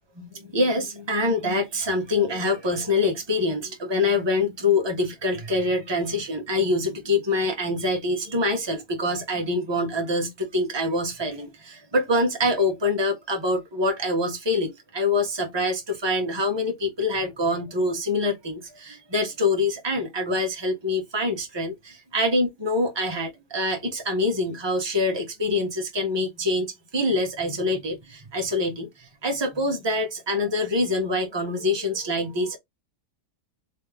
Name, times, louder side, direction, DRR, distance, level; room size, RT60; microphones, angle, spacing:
voice 1, 0.1-32.6, left 2 dB, 15° right, 1.3 m, -25 dB
4.0 x 3.2 x 3.5 m
omnidirectional pair, 1.9 m